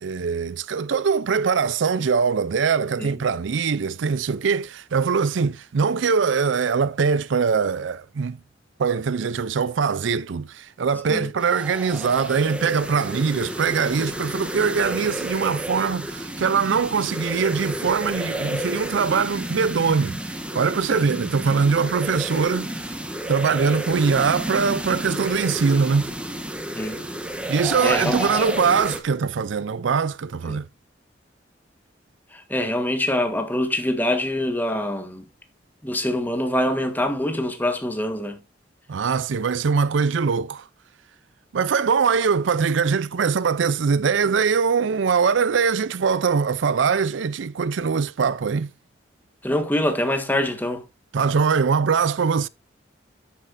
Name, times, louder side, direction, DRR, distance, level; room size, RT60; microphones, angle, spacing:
voice 1, 0.0-8.4 8.8-22.9 23.3-26.1 27.5-30.7 38.9-40.7 41.5-48.7 51.1-52.5, right 5 dB, 80° right, 0.5 m, -22 dB
sound 1, 11.4-29.0, right 1 dB, 5° right, 1.2 m, -31 dB
voice 2, 27.8-28.3 30.5-30.6 32.3-35.2 35.8-38.4 49.4-50.8, left 1 dB, 10° left, 1.5 m, -24 dB
10.5 x 8.4 x 2.6 m
head